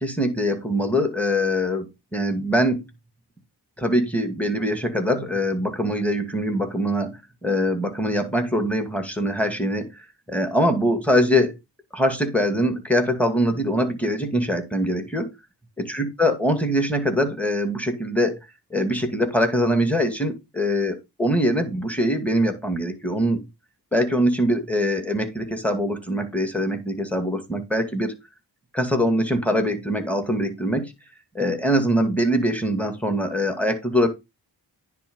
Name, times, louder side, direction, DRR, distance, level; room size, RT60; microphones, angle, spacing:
voice 1, 0.0-2.8 3.8-9.9 10.3-11.6 11.9-15.3 15.8-18.4 18.7-20.9 21.2-23.4 23.9-28.2 28.7-30.9 31.3-34.1, equal, 5° left, 6 dB, 2.3 m, -23 dB
9.9 x 3.6 x 5.4 m, 0.23 s
cardioid pair, 60°, 41 cm